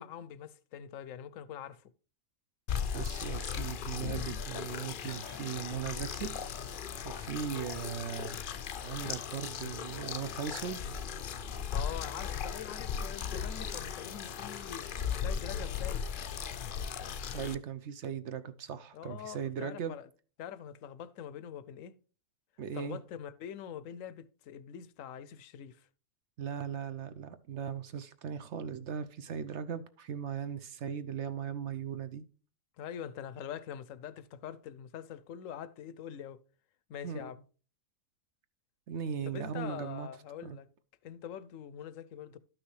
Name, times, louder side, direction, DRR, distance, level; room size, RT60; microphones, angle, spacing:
voice 1, 0.0-1.9 11.7-14.9 15.2-16.1 18.9-20.1 20.4-22.0 22.7-25.9 32.8-36.4 36.9-37.4 39.3-40.7 41.0-42.4, left 9 dB, 85° left, 1.0 m, -44 dB
sound 1, 2.7-17.6, left 7 dB, 55° left, 0.6 m, -37 dB
voice 2, 2.9-6.3 7.0-8.4 8.8-10.8 17.3-20.0 22.6-23.0 26.4-32.2 37.0-37.3 38.9-40.1 40.4-40.6, right 7 dB, 65° right, 0.9 m, -38 dB
12.0 x 6.1 x 3.2 m
omnidirectional pair, 1.4 m